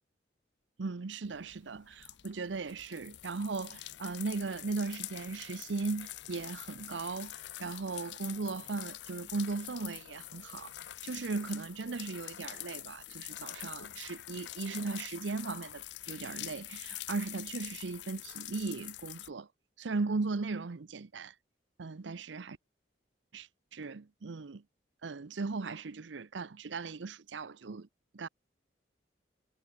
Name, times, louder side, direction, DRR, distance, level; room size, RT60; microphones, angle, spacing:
voice 1, 0.8-19.5 19.8-21.3 21.8-22.6 23.3-24.6 25.0-27.9 28.1-28.3, right 3 dB, 90° right, 0.7 m, -37 dB
sound 1, 1.2-19.3, left 15 dB, 70° left, 0.5 m, -45 dB
head